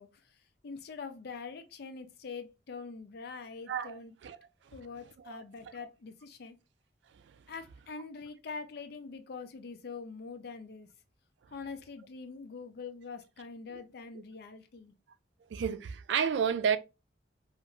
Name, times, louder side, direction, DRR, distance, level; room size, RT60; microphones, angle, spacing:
voice 1, 0.0-4.2 4.7-6.6 7.5-10.9 11.5-14.9, left 4 dB, 65° left, 0.5 m, -44 dB
voice 2, 3.7-4.4 5.2-5.4 15.5-16.8, right 7 dB, 85° right, 0.3 m, -31 dB
2.5 x 2.4 x 2.9 m
head